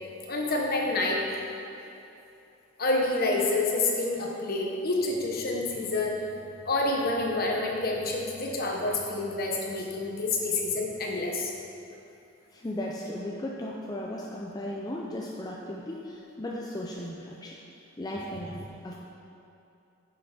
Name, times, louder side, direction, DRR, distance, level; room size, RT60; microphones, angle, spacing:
voice 1, 0.3-1.2 2.8-6.2 6.6-11.5, left 2 dB, 50° left, -1 dB, 1.2 m, -28 dB
voice 2, 12.5-17.6 18.0-19.0, left 1 dB, 20° left, -3 dB, 0.5 m, -36 dB
10.0 x 6.5 x 4.3 m, 2.8 s
head